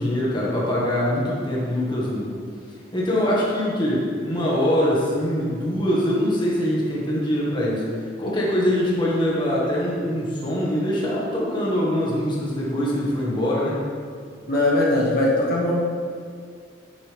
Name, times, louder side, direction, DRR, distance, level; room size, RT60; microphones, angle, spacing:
voice 1, 0.0-2.3 2.9-7.8 8.2-13.8, equal, 25° left, -6 dB, 1.7 m, -23 dB
voice 2, 14.5-15.7, left 1 dB, 50° left, -5 dB, 1.7 m, -20 dB
8.8 x 8.8 x 3.5 m, 2.1 s
head